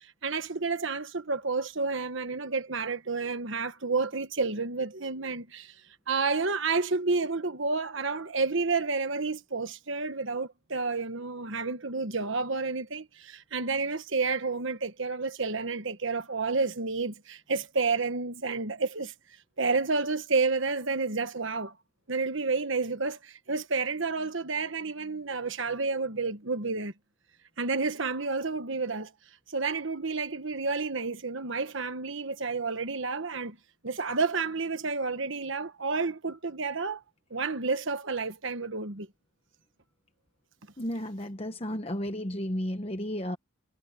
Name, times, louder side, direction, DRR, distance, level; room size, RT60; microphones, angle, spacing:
voice 1, 0.0-5.7 6.1-19.1 19.6-21.7 22.1-26.9 27.6-29.1 29.5-33.6 33.8-37.0 37.3-39.1, right 4 dB, 60° right, 1.4 m, -30 dB
voice 2, 40.8-43.4, equal, 25° left, 1.0 m, -33 dB
head